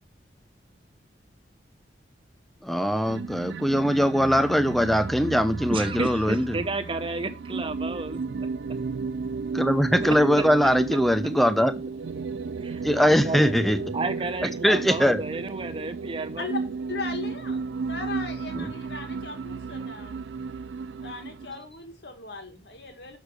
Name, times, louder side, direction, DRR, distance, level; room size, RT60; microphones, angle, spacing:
voice 1, 2.6-6.5 9.5-11.7 12.8-13.8 14.6-15.2 18.6-18.7, equal, ahead, 0.6 m, -21 dB
sound 1, 3.0-21.6, right 4 dB, 85° right, 0.4 m, -34 dB
voice 2, 5.7-8.2 10.0-10.4 12.6-13.6 13.9-16.5, right 2 dB, 30° right, 0.8 m, -32 dB
voice 3, 16.9-20.3 21.0-23.2, left 3 dB, 70° left, 1.9 m, -38 dB
6.5 x 6.4 x 4.8 m
head